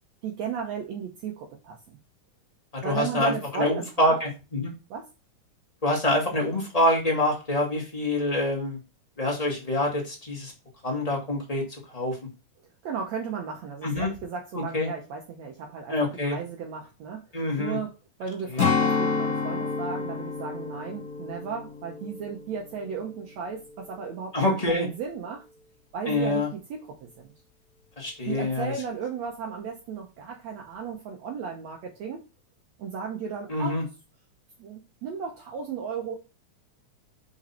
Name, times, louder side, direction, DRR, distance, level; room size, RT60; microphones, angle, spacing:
voice 1, 0.2-1.8 2.8-4.2 4.9-5.1 12.8-16.0 16.3-17.3 17.6-25.5 25.9-27.3 28.3-32.3 32.8-33.8 34.6-36.1, right 6 dB, 70° right, 2 dB, 2.0 m, -35 dB
voice 2, 2.8-4.7 5.8-8.8 9.2-10.5 10.8-11.6 11.9-12.2 13.8-14.1 14.5-14.9 15.9-16.4 17.3-17.8 18.5-18.6 24.3-24.9 26.1-26.5 28.0-28.7 33.5-33.8, left 1 dB, 20° left, -1 dB, 1.0 m, -26 dB
Strum, 18.6-23.3 23.7-23.9, left 5 dB, 55° left, 0.9 m, -29 dB
5.7 x 5.2 x 4.2 m, 0.30 s
omnidirectional pair, 3.5 m